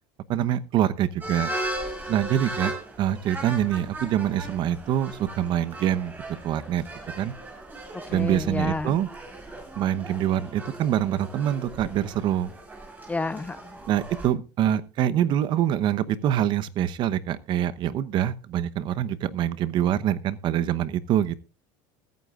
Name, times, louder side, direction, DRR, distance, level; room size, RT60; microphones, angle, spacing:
voice 1, 0.3-1.5 2.1-2.7 3.0-6.1 6.4-6.9 7.2-7.3 8.1-9.1 9.8-12.5 13.9-21.4, right 11 dB, 45° right, 0.9 m, -25 dB
sound 1, 1.2-14.3, right 1 dB, 15° right, 5.7 m, -37 dB
voice 2, 7.9-9.0 13.1-13.8, left 3 dB, 15° left, 0.6 m, -30 dB
20.5 x 9.4 x 2.4 m
supercardioid pair, 120°, 11 cm